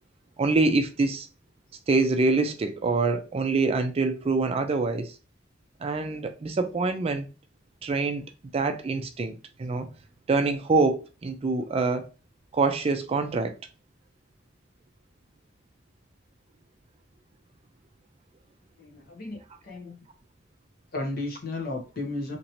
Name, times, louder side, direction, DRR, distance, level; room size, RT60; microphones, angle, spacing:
voice 1, 0.4-1.3 1.9-5.1 5.8-7.3 7.8-8.3 8.5-9.9 10.3-12.1 12.5-13.6, right 3 dB, 30° right, 0.3 m, -25 dB
voice 2, 18.8-20.0 20.9-22.4, left 2 dB, 50° left, 1.0 m, -34 dB
2.9 x 2.8 x 2.8 m
head